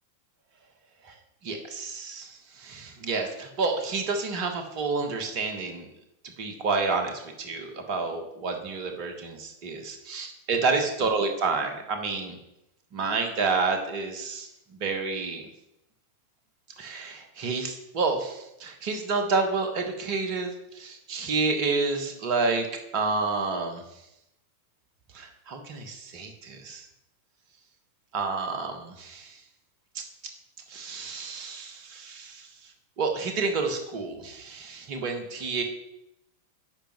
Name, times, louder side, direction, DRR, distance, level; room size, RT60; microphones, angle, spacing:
voice 1, 1.4-5.9 6.4-12.4 12.9-15.4 16.8-22.7 22.9-23.8 25.1-26.8 28.1-29.4 29.9-30.0 30.7-32.5 33.0-35.6, right 4 dB, 45° right, 5 dB, 1.3 m, -29 dB
10.0 x 5.1 x 3.1 m, 0.84 s
figure-of-eight pair, 90°, 0 cm